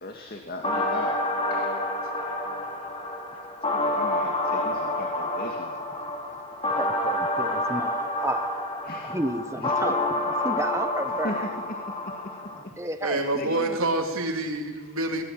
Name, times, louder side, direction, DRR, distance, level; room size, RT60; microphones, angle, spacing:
voice 1, 0.0-1.2 1.5-1.8 3.7-5.8 8.9-9.1 11.2-11.4 13.1-13.8, left 1 dB, 45° left, 3 dB, 2.4 m, -37 dB
sound 1, 0.6-12.6, left 1 dB, 25° left, 3.3 m, -28 dB
voice 2, 6.8-11.8 12.8-13.3, right 1 dB, 15° right, 8 dB, 1.3 m, -32 dB
voice 3, 13.0-15.2, right 2 dB, 70° right, 3 dB, 3.7 m, -27 dB
24.0 x 18.5 x 9.2 m, 1.3 s
head